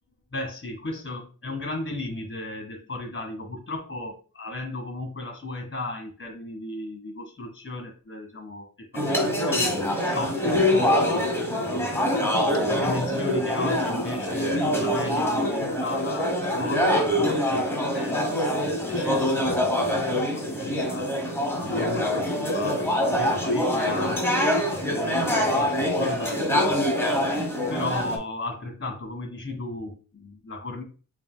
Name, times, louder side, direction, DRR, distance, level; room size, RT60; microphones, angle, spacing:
voice 1, 0.3-9.7 10.0-11.2 11.6-19.7 20.1-21.1 21.6-24.3 24.7-27.1 27.7-30.8, left 2 dB, 35° left, 4 dB, 1.5 m, -35 dB
sound 1, 8.9-28.2, left 1 dB, 5° left, 1.1 m, -24 dB
6.7 x 2.6 x 2.3 m, 0.39 s
wide cardioid pair, 110°, 33 cm